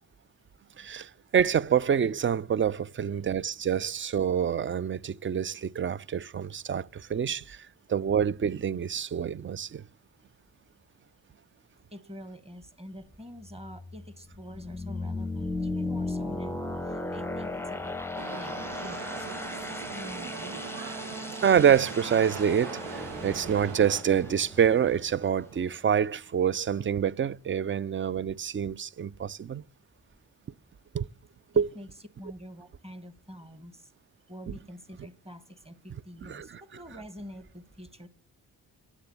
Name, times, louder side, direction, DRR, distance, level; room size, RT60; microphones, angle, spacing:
voice 1, 0.8-9.8 21.4-29.6 30.9-31.1 31.6-31.7 36.3-36.5, right 8 dB, 30° right, 0.4 m, -26 dB
voice 2, 11.9-18.0 18.3-20.6 31.5-31.9 32.2-33.9 34.3-38.1, equal, 15° right, 1.3 m, -46 dB
sound 1, 13.4-26.0, left 2 dB, 5° left, 0.7 m, -36 dB
sound 2, 18.2-24.0, right 8 dB, 85° right, 0.8 m, -40 dB
9.5 x 7.2 x 6.9 m
supercardioid pair, 40°, 42 cm